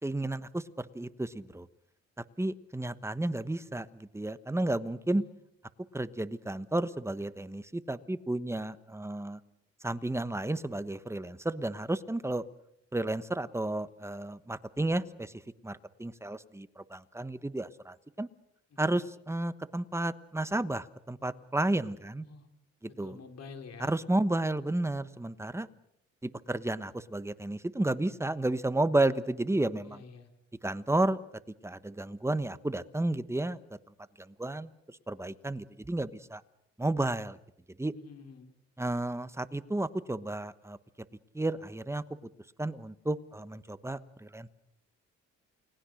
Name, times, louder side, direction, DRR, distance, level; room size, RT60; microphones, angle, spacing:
voice 1, 0.0-1.7 2.2-5.2 5.9-9.4 9.8-12.4 12.9-18.3 18.8-22.2 22.8-23.2 23.8-25.7 26.2-30.0 30.6-31.2 31.6-33.8 34.2-36.4 36.8-37.4 37.8-37.9 38.8-40.8 41.3-42.0 42.6-44.5, right 2 dB, 10° right, 13 dB, 1.1 m, -32 dB
voice 2, 22.9-23.9 29.8-30.3 37.9-38.5, left 5 dB, 55° left, 5 dB, 4.3 m, -49 dB
29.5 x 19.5 x 6.5 m, 0.78 s
cardioid pair, 90°, 30 cm